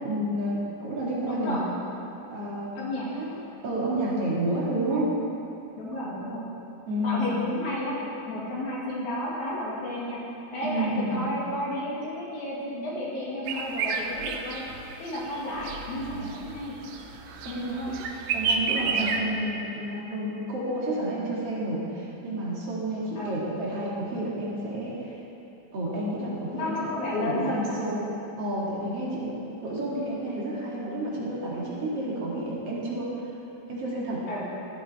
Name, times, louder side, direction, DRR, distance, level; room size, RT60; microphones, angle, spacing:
voice 1, 0.0-1.6 2.3-2.8 3.1-3.3 3.6-5.1 6.9-7.3 10.6-11.3 17.4-17.9 18.3-25.2 25.7-26.9 27.2-28.0 28.4-29.3 29.6-33.1 33.7-34.2, right 1 dB, 55° right, -6 dB, 3.2 m, -30 dB
voice 2, 1.2-1.7 2.8-3.1 4.9-5.0 5.8-6.4 7.0-8.0 8.3-10.2 10.5-14.6 15.0-16.8 17.5-18.0 23.2-23.4 26.5-27.8 34.3-34.4, left 1 dB, 75° left, -6 dB, 3.8 m, -32 dB
sound 1, 13.5-19.2, right 5 dB, 70° right, 2.0 m, -31 dB
14.5 x 12.5 x 4.4 m, 2.9 s
omnidirectional pair, 3.4 m